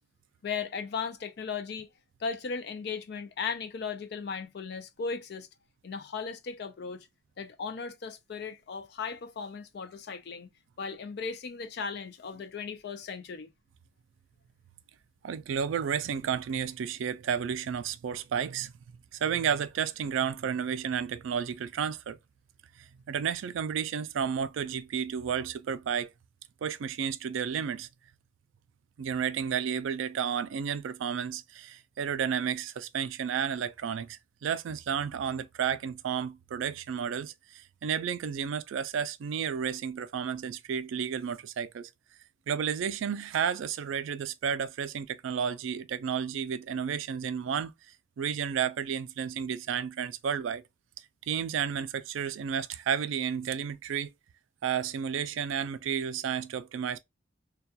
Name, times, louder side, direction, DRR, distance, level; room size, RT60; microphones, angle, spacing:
voice 1, 0.4-1.9 2.2-5.5 5.8-7.1 7.4-10.5 10.8-13.5, left 5 dB, 55° left, 0.4 m, -36 dB
voice 2, 15.2-18.7 19.1-22.2 22.8-26.1 26.6-27.9 29.0-41.9 42.5-47.7 48.2-50.6 51.3-54.1 54.6-57.0, right 7 dB, 75° right, 0.3 m, -32 dB
2.3 x 2.2 x 2.7 m
head